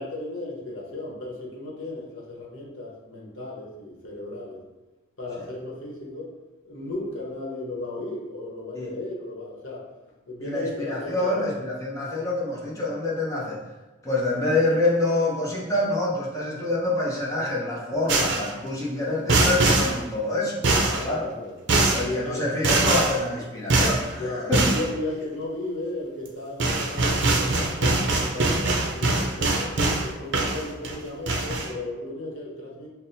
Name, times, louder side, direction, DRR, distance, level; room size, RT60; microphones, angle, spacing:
voice 1, 0.0-4.6 5.2-6.3 6.6-9.8 10.3-11.4 20.8-21.6 21.9-22.5 24.2-29.7 30.0-32.9, left 2 dB, 70° left, -3 dB, 1.0 m, -35 dB
voice 2, 10.4-13.6 14.0-20.6 21.0-21.3 21.9-24.7 29.1-29.3, left 2 dB, 15° left, -5 dB, 0.7 m, -26 dB
sound 1, 18.1-18.5 19.3-19.9 20.6-21.0 21.7-22.0 22.6-23.2 23.7-24.0 24.5-24.8 26.2-26.3 26.6-30.1 30.3-30.9 31.3-31.7, right 2 dB, 55° right, 0.5 m, -22 dB
5.8 x 2.1 x 2.7 m, 1.1 s
head